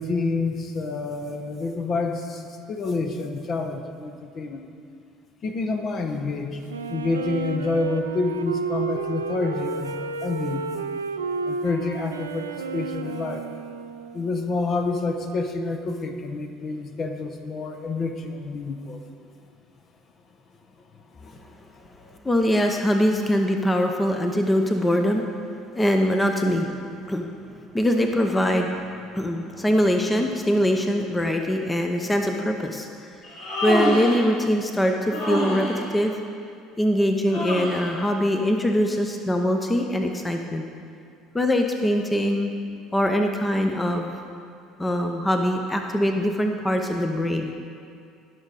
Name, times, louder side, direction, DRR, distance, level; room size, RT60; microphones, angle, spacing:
voice 1, 0.0-4.6 5.4-6.6 6.9-10.7 11.5-13.4 14.1-19.0 21.2-22.2, left 3 dB, 40° left, 5 dB, 1.0 m, -28 dB
Wind instrument woodwind instrument, 6.7-14.4, right 4 dB, 80° right, 0.4 m, -32 dB
voice 2, 22.2-25.3 25.7-26.7 27.1-27.3 27.7-28.8 29.1-32.9 33.6-35.7 35.9-36.1 36.8-40.6 41.3-42.5 42.9-44.1 44.8-47.5, equal, 15° left, 4 dB, 0.8 m, -22 dB
Human voice, 33.2-34.3 35.1-35.8 37.3-38.0, equal, 60° left, 2.0 m, -26 dB
17.0 x 6.2 x 4.1 m, 2.4 s
figure-of-eight pair, 60°, 0 cm